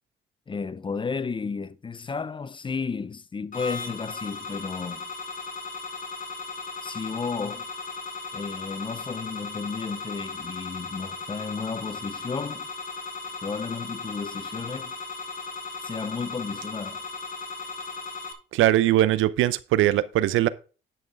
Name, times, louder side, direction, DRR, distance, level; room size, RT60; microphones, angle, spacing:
voice 1, 0.5-5.1 6.8-7.7 8.3-12.7 13.4-14.9 15.8-17.0, left 5 dB, 25° left, 0.5 m, -33 dB
sound 1, 3.5-18.3, left 4 dB, 45° left, 1.9 m, -37 dB
voice 2, 18.5-20.5, right 14 dB, 85° right, 0.6 m, -21 dB
11.0 x 6.3 x 3.4 m
cardioid pair, 90°, 20 cm